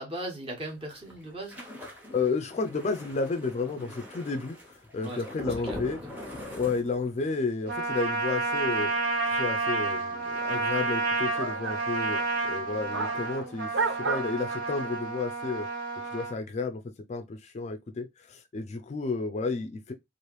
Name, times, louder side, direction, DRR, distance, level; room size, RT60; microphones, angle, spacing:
voice 1, 0.0-1.6 3.7-3.9 5.0-5.2 5.7-5.8 6.0-6.1, right 1 dB, 30° right, 1.2 m, -38 dB
sound 1, 0.6-7.4 7.7-8.0 8.2-8.4, left 1 dB, 10° right, 0.9 m, -42 dB
voice 2, 2.1-6.0 6.5-8.9 9.3-13.7 14.0-15.7 16.1-19.9, left 4 dB, 35° left, 0.3 m, -32 dB
Trumpet, 7.7-16.4, right 3 dB, 55° right, 1.4 m, -30 dB
sound 2, 8.5-14.9, right 4 dB, 90° right, 0.6 m, -36 dB
3.1 x 2.5 x 3.0 m
head